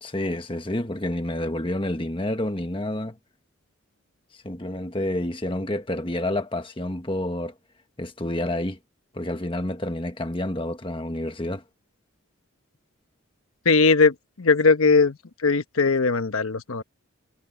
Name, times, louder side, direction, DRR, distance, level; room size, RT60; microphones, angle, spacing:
voice 1, 0.0-3.2 4.4-7.5 8.0-8.8 9.1-11.6, left 1 dB, 25° left, 1.4 m, -29 dB
voice 2, 13.6-15.2 15.4-16.8, left 4 dB, 85° left, 1.1 m, -19 dB
head